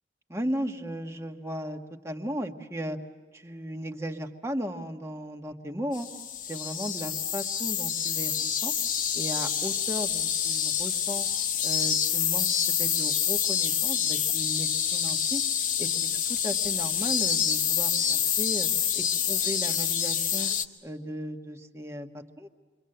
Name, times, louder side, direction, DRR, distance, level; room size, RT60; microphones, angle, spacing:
voice 1, 0.3-1.8 2.0-3.0 3.3-6.1 6.5-8.7 9.1-11.3 11.6-12.5 12.8-15.4 15.8-18.7 18.9-20.5 20.8-22.5, equal, 15° right, 4 dB, 1.5 m, -36 dB
sound 1, 5.9-20.6, left 8 dB, 50° left, 1.2 m, -27 dB
28.5 x 24.5 x 7.9 m, 1.3 s
head